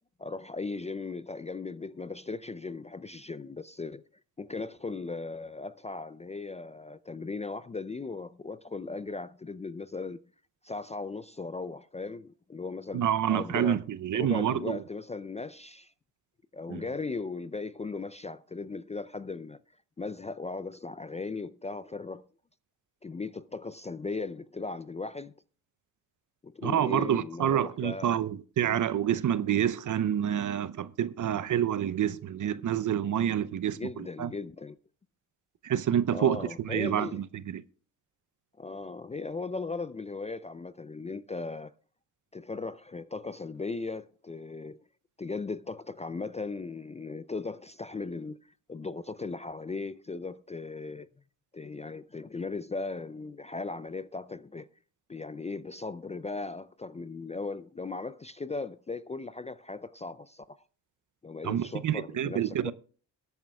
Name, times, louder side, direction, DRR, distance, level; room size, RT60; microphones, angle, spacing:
voice 1, 0.2-4.0 4.4-10.2 10.6-13.8 14.1-15.9 16.5-19.6 20.0-22.3 23.0-25.3 26.4-28.2 33.7-34.8 36.1-37.2 38.6-41.7 42.3-44.8 45.2-51.1 51.5-54.7 55.1-60.6 61.2-62.7, left 3 dB, 15° left, 0.4 m, -37 dB
voice 2, 12.9-14.8 16.7-16.8 26.6-34.3 35.6-37.6 61.4-62.7, right 10 dB, 45° right, 0.7 m, -28 dB
23.0 x 8.5 x 2.3 m
supercardioid pair, 55°, 41 cm